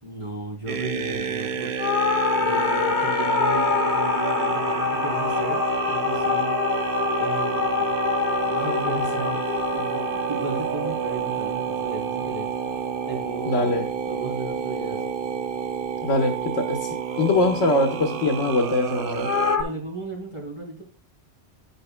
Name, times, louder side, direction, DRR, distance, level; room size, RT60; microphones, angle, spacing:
voice 1, 0.0-1.7 2.4-6.5 7.2-7.9 8.4-12.5 13.1-13.8 14.1-15.0 19.6-20.8, right 2 dB, 25° right, -2 dB, 3.2 m, -35 dB
sound 1, 0.7-19.6, right 7 dB, 55° right, 0.8 m, -29 dB
sound 2, 1.8-12.3 19.2-19.6, left 5 dB, 65° left, 1.5 m, -25 dB
voice 2, 13.5-13.8 16.0-19.3, left 2 dB, 85° left, 3 dB, 1.5 m, -23 dB
10.5 x 9.6 x 2.2 m, 0.40 s
omnidirectional pair, 1.2 m